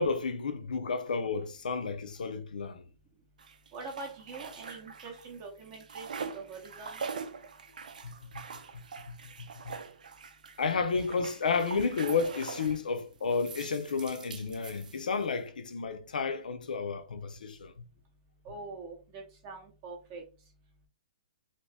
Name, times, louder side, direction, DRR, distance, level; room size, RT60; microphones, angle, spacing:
voice 1, 0.0-2.8 8.0-8.4 9.1-9.7 10.6-17.7, left 4 dB, 90° left, 0.7 m, -32 dB
sound 1, 3.4-5.3 5.6-12.8 13.3-15.3, right 5 dB, 80° right, 0.6 m, -43 dB
voice 2, 3.7-7.0 18.4-20.2, right 3 dB, 20° right, 0.6 m, -44 dB
2.9 x 2.7 x 3.3 m
hypercardioid pair, 175°, 4 cm